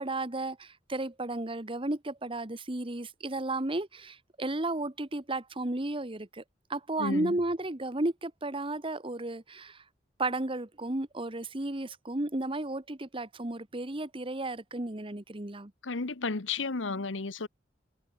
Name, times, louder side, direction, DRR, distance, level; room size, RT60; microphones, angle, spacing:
voice 1, 0.0-6.4 6.7-9.8 10.2-15.7, right 2 dB, 30° right, 1.4 m, -33 dB
voice 2, 7.0-7.4 15.8-17.5, left 4 dB, 90° left, 1.2 m, -33 dB
head